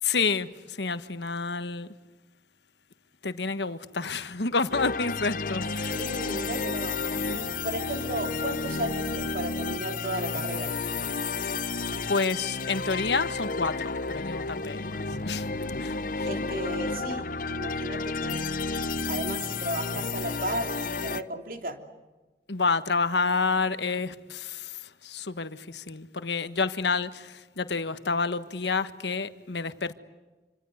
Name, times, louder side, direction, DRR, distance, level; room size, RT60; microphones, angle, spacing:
voice 1, 0.0-1.9 3.2-6.2 12.1-15.5 15.8-16.3 22.5-29.9, left 4 dB, 80° left, 1.4 m, -29 dB
sound 1, 4.7-21.2, left 4 dB, 50° left, 0.8 m, -31 dB
voice 2, 5.9-6.9 7.3-10.7 16.2-18.4 19.1-21.8, right 1 dB, 50° right, 3.1 m, -35 dB
27.0 x 26.0 x 8.0 m
head